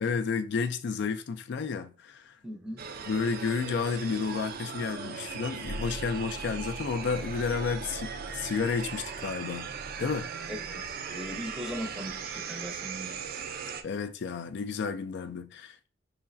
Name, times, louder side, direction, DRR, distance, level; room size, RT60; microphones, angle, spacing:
voice 1, 0.0-2.3 3.1-9.7 10.0-10.3 13.8-15.9, left 5 dB, 60° left, 0.4 m, -31 dB
voice 2, 2.4-2.8 10.5-13.2, equal, 5° right, 0.6 m, -39 dB
sound 1, 2.8-13.8, right 6 dB, 50° right, 0.4 m, -39 dB
sound 2, 5.6-12.4, right 1 dB, 75° right, 0.9 m, -45 dB
4.7 x 3.1 x 2.5 m
head